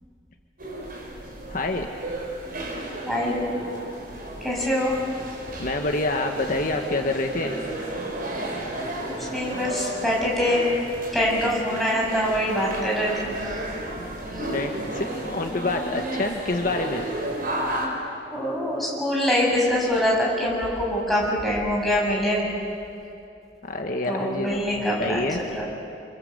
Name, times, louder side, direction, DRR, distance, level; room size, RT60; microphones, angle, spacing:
sound 1, 0.6-17.9, right 1 dB, 55° right, 5.6 m, -33 dB
voice 1, 1.5-1.9 5.6-7.5 14.5-17.0 23.6-24.6 25.0-25.4, left 2 dB, 50° left, 3 dB, 1.6 m, -27 dB
voice 2, 3.1-3.5 4.4-5.0 9.3-10.7 11.1-13.3 14.4-14.5 18.3-22.5 24.0-25.6, equal, ahead, -4 dB, 7.3 m, -24 dB
28.0 x 25.5 x 8.1 m, 2.6 s
head